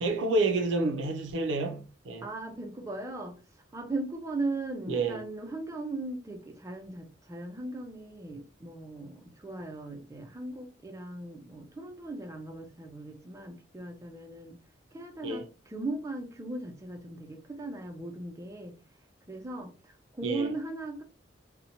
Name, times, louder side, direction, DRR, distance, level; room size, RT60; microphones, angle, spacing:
voice 1, 0.0-2.3 4.9-5.2 15.2-15.5 20.2-20.5, right 2 dB, 80° right, 0.5 m, -29 dB
voice 2, 2.2-3.4 3.7-14.6 14.9-18.8 19.3-21.0, right 2 dB, 15° right, 0.4 m, -38 dB
2.7 x 2.1 x 2.7 m
head